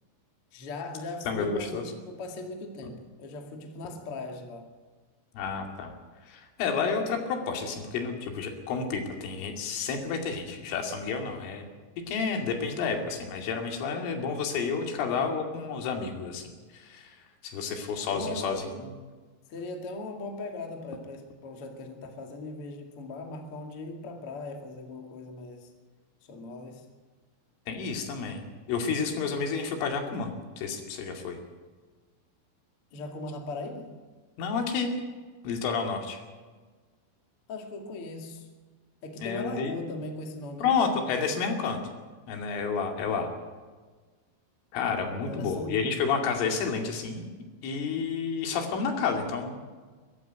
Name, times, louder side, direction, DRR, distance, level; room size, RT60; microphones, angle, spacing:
voice 1, 0.5-4.7 18.1-18.8 19.5-25.7 26.2-26.9 32.9-33.9 37.5-38.5 39.0-40.7 45.0-46.0, left 2 dB, 40° left, 3 dB, 2.1 m, -39 dB
voice 2, 1.3-1.8 5.4-5.9 6.3-11.7 12.1-17.1 17.4-18.7 27.7-31.4 34.4-35.0 35.4-36.2 39.2-39.7 40.6-41.8 42.3-43.3 44.7-47.3 47.6-49.6, left 5 dB, 75° left, 3 dB, 4.9 m, -30 dB
23.0 x 12.5 x 9.2 m, 1.4 s
omnidirectional pair, 5.9 m